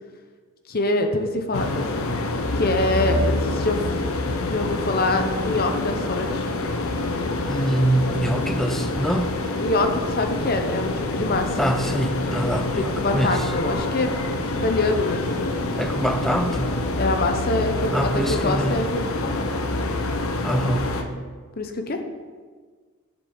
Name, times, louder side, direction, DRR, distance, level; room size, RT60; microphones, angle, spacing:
voice 1, 0.7-2.0 2.5-3.8 4.5-6.5 9.6-11.5 12.8-14.1 14.4-15.5 17.0-19.4 21.6-22.0, left 2 dB, 40° left, 5 dB, 0.8 m, -25 dB
sound 1, 1.5-21.0, left 2 dB, 70° left, 0.9 m, -26 dB
voice 2, 7.5-9.3 11.6-13.5 15.8-16.8 17.9-18.8 20.4-20.8, right 1 dB, ahead, 6 dB, 0.5 m, -24 dB
7.9 x 5.4 x 7.0 m, 1.5 s
head